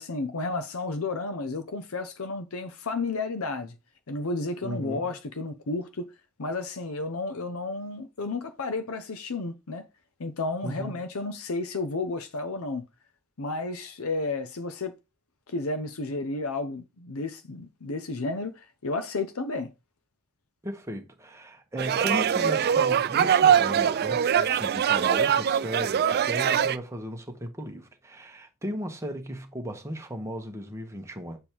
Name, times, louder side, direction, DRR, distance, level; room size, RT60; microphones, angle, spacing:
voice 1, 0.0-3.7 4.1-6.1 6.4-9.9 10.2-12.9 13.4-14.9 15.5-19.7, left 3 dB, 70° left, 0.8 m, -32 dB
voice 2, 4.6-5.1 10.6-10.9 20.6-31.4, equal, 15° right, 1.0 m, -36 dB
sound 1, 21.8-26.8, right 8 dB, 45° right, 0.4 m, -23 dB
7.2 x 3.3 x 4.5 m
head